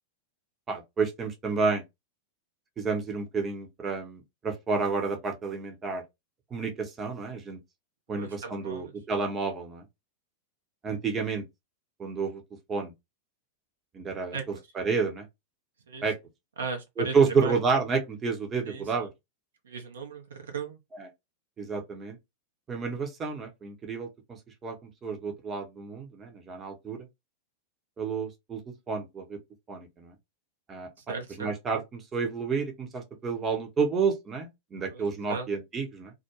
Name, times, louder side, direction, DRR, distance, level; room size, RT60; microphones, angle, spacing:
voice 1, 0.7-1.8 2.8-6.0 6.5-7.6 8.1-9.8 10.8-11.4 12.0-12.4 12.7-12.9 13.9-14.4 14.7-15.3 16.0-16.2 17.0-19.1 20.9-21.1 21.6-22.2 22.7-24.1 24.6-24.8 25.0-27.1 28.0-28.6 28.9-29.4 29.7-30.1 30.7-36.1, right 5 dB, 25° right, 0.7 m, -30 dB
voice 2, 8.1-8.9 14.3-14.6 15.9-16.1 16.6-17.1 17.4-17.6 18.7-18.9 19.6-20.8 31.1-31.5 34.8-35.0 35.3-35.5, right 4 dB, 65° right, 0.6 m, -37 dB
2.3 x 2.2 x 3.0 m
figure-of-eight pair, 90°, 0 cm